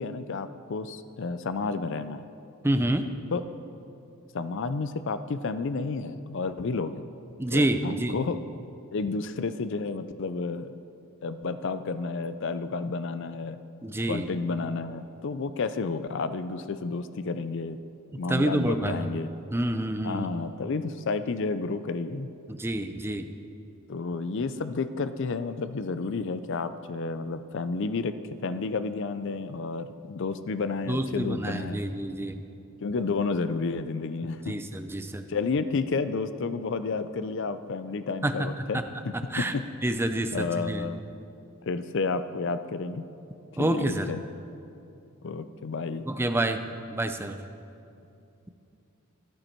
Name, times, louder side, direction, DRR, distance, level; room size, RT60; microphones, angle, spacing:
voice 1, 0.0-2.3 3.3-3.4 4.3-7.1 7.5-8.4 8.9-10.8 11.2-13.6 14.1-17.8 18.1-19.3 20.0-22.3 23.9-28.1 28.4-31.8 32.8-34.6 35.3-39.7 40.3-41.0 41.7-43.0 43.5-44.2 45.2-46.0, left 4 dB, 55° left, 12 dB, 0.5 m, -31 dB
voice 2, 2.6-3.1 7.4-8.2 13.8-14.3 18.3-19.1 19.5-20.3 22.5-23.3 30.9-32.4 34.5-35.2 38.2-38.7 39.1-39.5 39.8-40.9 43.6-44.1 46.1-46.6 46.9-47.4, right 1 dB, 10° right, 8 dB, 0.5 m, -28 dB
13.0 x 11.0 x 4.5 m, 2.7 s
head